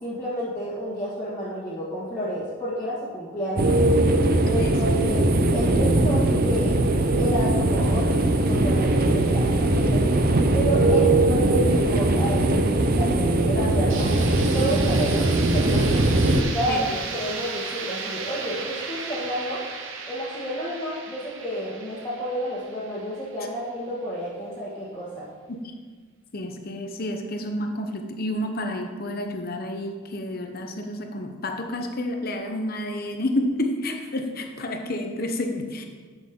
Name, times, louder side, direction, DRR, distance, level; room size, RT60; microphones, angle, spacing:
voice 1, 0.0-3.8 4.4-6.8 7.1-10.1 10.5-16.0 16.4-19.6 20.1-25.3, equal, 15° left, -11 dB, 1.7 m, -30 dB
sound 1, 3.6-16.4, right 2 dB, 45° right, 0.7 m, -20 dB
voice 2, 4.6-4.9 16.7-17.0 25.5-25.7 26.3-35.8, left 1 dB, 45° left, 4 dB, 0.9 m, -30 dB
sound 2, 13.9-23.7, right 4 dB, 65° right, 1.0 m, -35 dB
11.5 x 6.4 x 3.7 m, 1.5 s
head